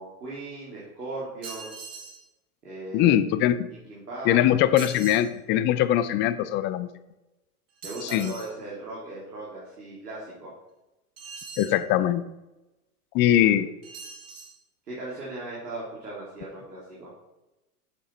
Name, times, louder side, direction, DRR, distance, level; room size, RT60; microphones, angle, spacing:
voice 1, 0.0-1.7 2.6-3.1 3.7-4.4 7.8-10.5 13.4-13.5 14.8-17.1, right 2 dB, 90° right, -6 dB, 2.9 m, -38 dB
sound 1, 1.4-2.2 4.8-5.3 7.8-8.5 11.2-11.8 13.8-14.6, right 5 dB, 30° right, 1.8 m, -41 dB
voice 2, 2.9-3.7 4.2-6.9 8.0-8.3 11.6-12.2 13.1-13.6, left 12 dB, 25° left, 13 dB, 0.4 m, -22 dB
8.2 x 6.8 x 4.3 m, 0.99 s
hypercardioid pair, 105°, 47 cm